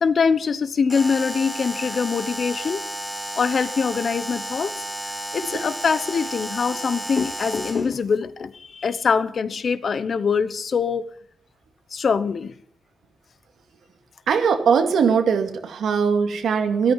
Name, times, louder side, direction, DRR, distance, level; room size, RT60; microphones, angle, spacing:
voice 1, 0.0-2.8 3.4-4.7 5.0-11.1 11.9-12.5, left 5 dB, 45° left, 0.9 m, -23 dB
Alarm, 0.9-7.9, right 1 dB, ahead, 2.2 m, -32 dB
voice 2, 14.3-16.9, right 6 dB, 85° right, 2.2 m, -20 dB
14.0 x 13.5 x 5.7 m
wide cardioid pair, 165°, 0 cm